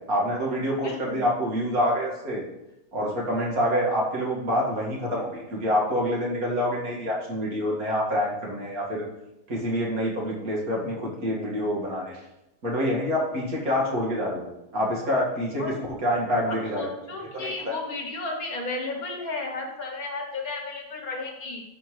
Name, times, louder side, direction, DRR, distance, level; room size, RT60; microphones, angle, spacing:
voice 1, 0.1-2.4 2.9-9.0 9.5-12.2 12.6-14.5 14.7-15.6 16.0-16.9 17.3-17.8, equal, 55° right, -3 dB, 2.4 m, -26 dB
voice 2, 0.8-1.2 15.6-15.7 16.5-21.6, left 3 dB, 55° left, 2 dB, 1.7 m, -33 dB
13.0 x 5.6 x 3.2 m, 0.91 s
omnidirectional pair, 1.9 m